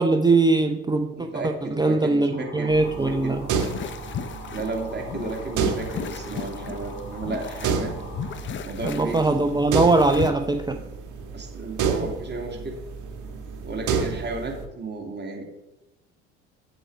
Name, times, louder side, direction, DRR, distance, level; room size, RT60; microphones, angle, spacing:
voice 1, 0.0-3.4 8.8-10.8, right 3 dB, 10° right, 6 dB, 0.7 m, -21 dB
voice 2, 1.1-3.5 4.5-7.9 8.6-9.2 11.3-12.8 13.6-15.4, right 3 dB, 30° right, 1 dB, 2.4 m, -33 dB
sound 1, 2.3-8.4, left 3 dB, 80° left, 2.3 m, -43 dB
sound 2, 2.7-14.7, right 6 dB, 55° right, 1.6 m, -31 dB
sound 3, 3.5-10.3, left 7 dB, 35° left, 0.7 m, -36 dB
7.9 x 7.8 x 4.7 m, 0.97 s
hypercardioid pair, 60°, 35 cm